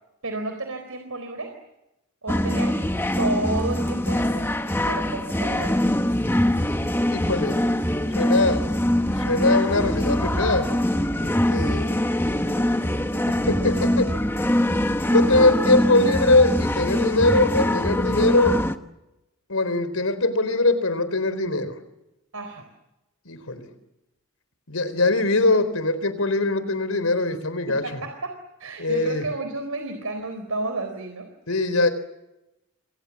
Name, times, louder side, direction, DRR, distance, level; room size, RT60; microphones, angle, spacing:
voice 1, 0.2-1.5 2.2-2.8 3.2-4.5 4.9-5.8 22.3-22.7 27.7-28.3 28.6-31.3, right 2 dB, 80° right, 6 dB, 4.1 m, -31 dB
sound 1, 2.3-18.8, left 1 dB, 10° left, 1.2 m, -23 dB
voice 2, 7.1-7.6 8.1-8.6 9.1-10.7 11.2-12.0 13.3-14.1 15.1-18.6 19.5-21.8 23.3-23.7 24.7-28.0 28.8-29.3 31.5-31.9, left 2 dB, 75° left, 12 dB, 4.2 m, -22 dB
28.5 x 24.5 x 7.3 m, 0.93 s
head